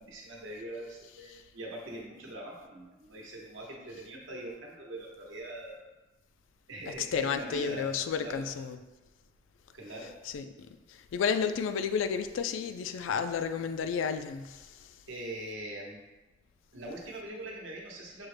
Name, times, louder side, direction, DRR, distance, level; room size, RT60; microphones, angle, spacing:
voice 1, 0.0-5.8 6.7-7.9 8.2-8.5 9.7-10.2 15.1-16.0 16.7-18.3, right 1 dB, 90° right, -1 dB, 0.9 m, -42 dB
voice 2, 6.9-8.8 9.9-10.5 10.9-14.9, left 6 dB, 85° left, 9 dB, 0.3 m, -32 dB
6.1 x 2.1 x 3.2 m, 1.1 s
head